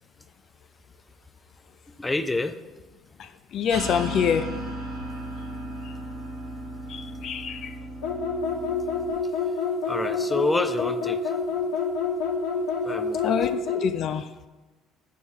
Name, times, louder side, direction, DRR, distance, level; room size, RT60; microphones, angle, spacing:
voice 1, 1.9-2.6 7.1-7.3 9.4-9.6 9.9-11.4 12.8-13.3, left 2 dB, 15° left, 9 dB, 0.6 m, -28 dB
voice 2, 3.2-4.5 5.8-5.9 6.9-7.8 13.2-14.5, left 8 dB, 60° left, 9 dB, 0.4 m, -27 dB
sound 1, 3.7-9.1, right 1 dB, 85° right, 1.9 m, -35 dB
sound 2, 8.0-13.9, left 5 dB, 80° left, 1.0 m, -27 dB
8.4 x 4.6 x 5.5 m, 1.2 s
supercardioid pair, 85°, 0 cm